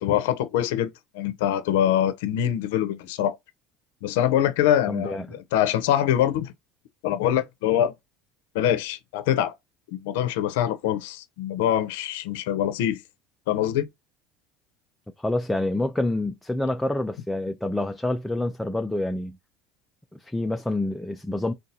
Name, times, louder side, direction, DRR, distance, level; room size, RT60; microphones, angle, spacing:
voice 1, 0.0-3.4 4.0-6.5 7.0-7.9 8.5-9.5 9.9-13.0 13.5-13.9, left 11 dB, 85° left, 0.6 m, -24 dB
voice 2, 4.9-5.3 15.2-19.4 20.1-21.5, left 1 dB, 5° left, 0.4 m, -27 dB
3.9 x 2.3 x 2.7 m
supercardioid pair, 125°, 0 cm